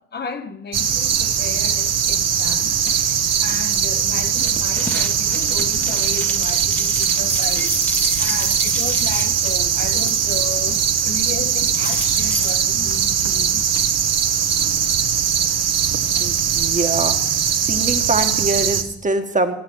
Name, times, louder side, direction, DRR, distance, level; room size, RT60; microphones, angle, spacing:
voice 1, 0.0-13.6, left 4 dB, 35° left, 0.9 m, -34 dB
sound 1, 0.7-18.8, right 8 dB, 60° right, 1.1 m, -20 dB
sound 2, 2.8-3.2 4.9-5.2 7.4-7.9 9.4-9.8 11.7-12.3 13.7-14.1 16.0-16.5, left 6 dB, 55° left, 1.6 m, -42 dB
sound 3, 4.4-10.6 10.9-11.4 11.7-12.5, left 1 dB, 5° left, 1.0 m, -30 dB
voice 2, 16.2-17.2 17.7-19.5, right 2 dB, 25° right, 1.3 m, -23 dB
16.5 x 6.8 x 6.1 m
cardioid pair, 90°, 30 cm